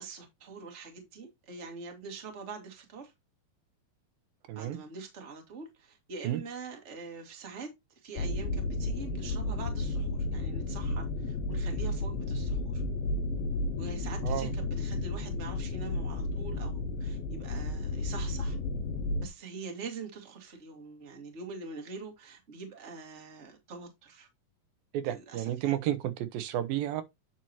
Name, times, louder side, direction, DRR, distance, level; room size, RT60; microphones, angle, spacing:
voice 1, 0.0-3.1 4.6-7.7 8.0-12.8 13.8-18.6 19.2-24.3 25.0-25.7, right 4 dB, 25° right, 1.9 m, -44 dB
voice 2, 4.5-4.8 6.2-6.4 14.2-14.5 24.9-27.0, right 12 dB, 80° right, 2.6 m, -31 dB
sound 1, 8.2-19.3, left 2 dB, 85° left, 2.7 m, -32 dB
9.1 x 5.9 x 3.0 m
omnidirectional pair, 4.2 m